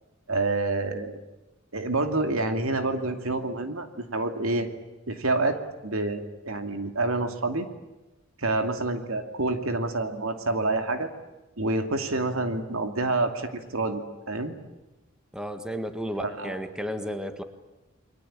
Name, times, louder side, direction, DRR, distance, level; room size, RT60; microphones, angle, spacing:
voice 1, 0.3-1.2 1.7-4.7 5.1-5.6 5.8-7.7 8.4-11.1 11.6-14.0 14.3-14.5 16.2-16.6, right 2 dB, 85° right, 7 dB, 2.6 m, -27 dB
voice 2, 15.3-17.4, equal, 5° right, 8 dB, 1.8 m, -33 dB
29.0 x 22.5 x 8.8 m, 1.0 s
head